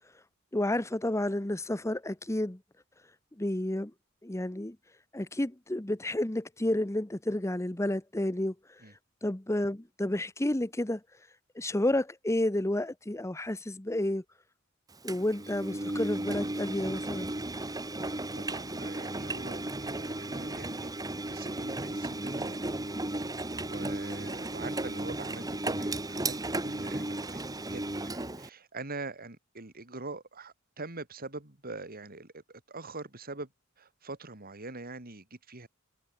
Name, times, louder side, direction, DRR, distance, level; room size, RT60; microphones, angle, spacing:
voice 1, 0.5-2.6 3.4-3.9 4.2-4.8 5.1-8.5 9.2-11.0 11.6-14.2 15.0-17.3, left 1 dB, 15° left, 1.0 m, -30 dB
Engine, 15.1-28.5, right 2 dB, 20° right, 1.6 m, -35 dB
voice 2, 18.4-20.9 21.3-22.7 23.6-26.4 26.6-27.4 27.7-33.5 33.8-35.7, right 3 dB, 45° right, 3.2 m, -43 dB
head